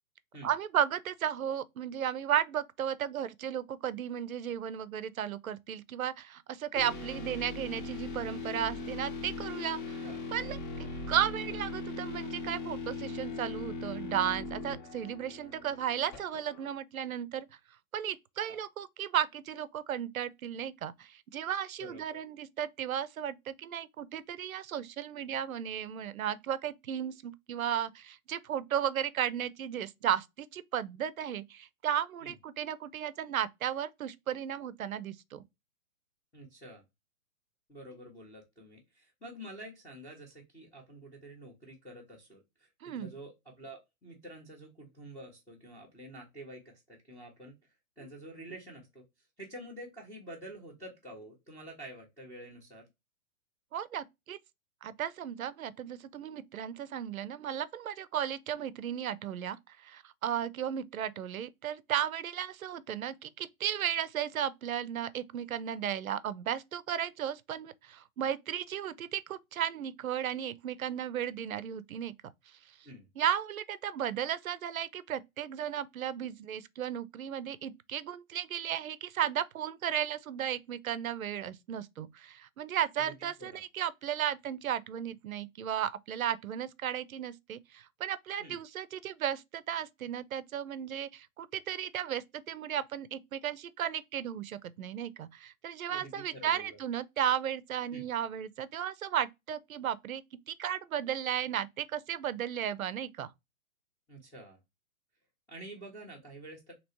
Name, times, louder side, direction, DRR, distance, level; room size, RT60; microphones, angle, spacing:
voice 1, 0.4-10.0 10.3-17.5 17.9-35.4 42.8-43.1 53.7-54.4 54.8-72.1 73.2-103.3, right 9 dB, 75° right, 0.5 m, -35 dB
sound 1, 6.8-16.7, left 3 dB, 35° left, 0.8 m, -39 dB
voice 2, 21.8-22.2 32.2-32.3 36.3-36.8 37.7-47.6 48.0-49.0 49.4-52.8 72.8-73.1 83.0-83.6 88.4-88.6 95.9-96.8 97.9-98.0 104.1-104.6 105.5-106.7, right 1 dB, 5° left, 0.6 m, -48 dB
3.0 x 2.8 x 2.7 m
figure-of-eight pair, 120°, 43 cm